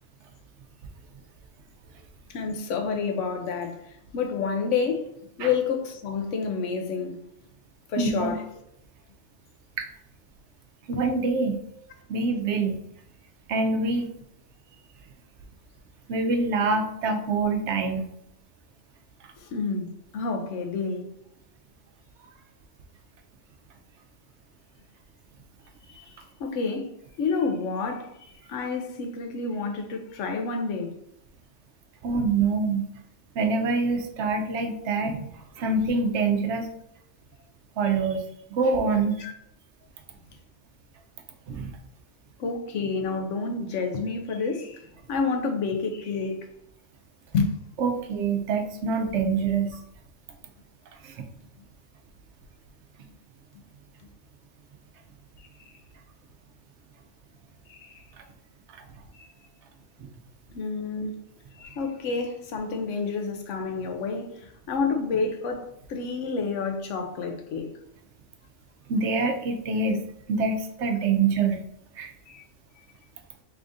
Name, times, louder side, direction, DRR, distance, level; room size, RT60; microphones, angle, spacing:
voice 1, 2.3-5.1 5.4-7.2 7.9-8.4 10.9-11.0 19.4-21.1 25.9-26.9 27.2-30.9 39.2-39.3 42.4-46.5 47.3-47.5 55.4-55.5 57.7-58.1 59.1-59.2 60.5-61.2 61.6-67.7 72.3-72.4, left 4 dB, 80° left, 1.0 m, -29 dB
voice 2, 8.0-8.4 9.8-9.9 10.9-11.6 12.1-12.8 13.5-14.1 16.1-18.1 32.0-32.8 33.3-36.7 37.8-38.2 38.5-39.2 41.5-41.7 47.8-49.7 51.0-51.2 58.2-58.3 68.9-70.0 70.3-71.7 72.0-72.1, right 4 dB, 70° right, 0.9 m, -25 dB
3.5 x 3.4 x 2.6 m
omnidirectional pair, 1.3 m